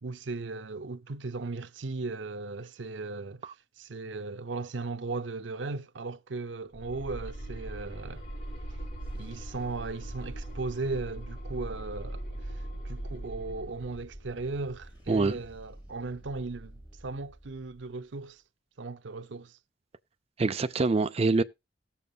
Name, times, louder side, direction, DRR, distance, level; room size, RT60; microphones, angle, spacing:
voice 1, 0.0-8.2 9.1-18.4 18.8-19.6, right 3 dB, 90° right, 0.7 m, -37 dB
sound 1, 6.7-15.6, right 1 dB, 60° left, 3.4 m, -40 dB
sound 2, 7.2-7.9 8.9-18.2, right 1 dB, 25° left, 4.5 m, -52 dB
voice 2, 20.4-21.4, right 3 dB, 35° right, 0.5 m, -25 dB
18.5 x 7.0 x 2.3 m
head